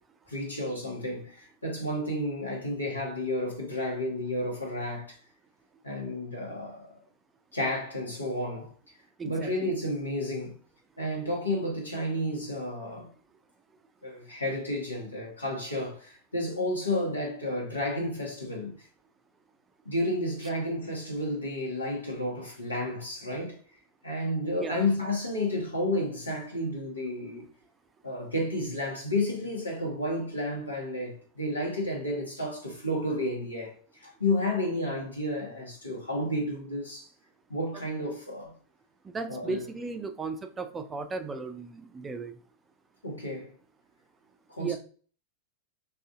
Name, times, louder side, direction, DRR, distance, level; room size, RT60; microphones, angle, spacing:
voice 1, 0.3-5.2 5.8-6.9 7.5-8.7 9.2-10.6 11.0-13.1 14.0-18.7 19.8-23.6 24.0-27.5 28.0-37.1 37.5-38.5 39.3-39.6 43.0-43.5 44.5-44.8, left 1 dB, 80° left, 1.0 m, -31 dB
voice 2, 9.2-9.7 24.6-24.9 39.0-42.3 44.6-44.8, right 4 dB, 15° right, 0.3 m, -36 dB
2.5 x 2.4 x 3.5 m
figure-of-eight pair, 90°, 0 cm